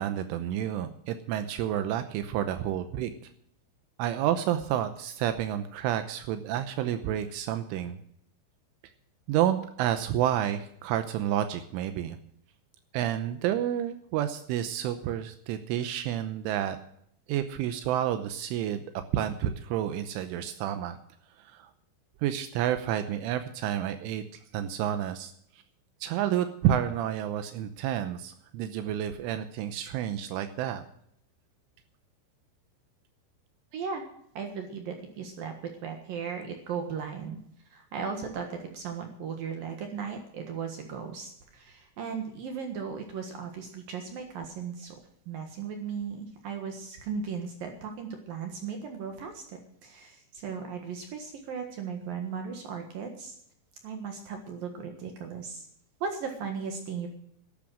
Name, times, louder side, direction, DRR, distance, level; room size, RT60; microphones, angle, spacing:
voice 1, 0.0-3.1 4.0-8.0 9.3-12.2 12.9-16.8 17.3-18.8 19.1-21.0 21.4-21.7 22.2-25.3 26.0-30.8, right 11 dB, 80° right, 9 dB, 3.3 m, -30 dB
voice 2, 33.7-34.0 34.3-35.5 35.8-37.4 37.7-44.9 45.3-53.4 53.8-55.7 56.0-57.1, right 6 dB, 60° right, 4 dB, 2.6 m, -37 dB
12.5 x 12.5 x 6.3 m, 0.68 s
omnidirectional pair, 5.7 m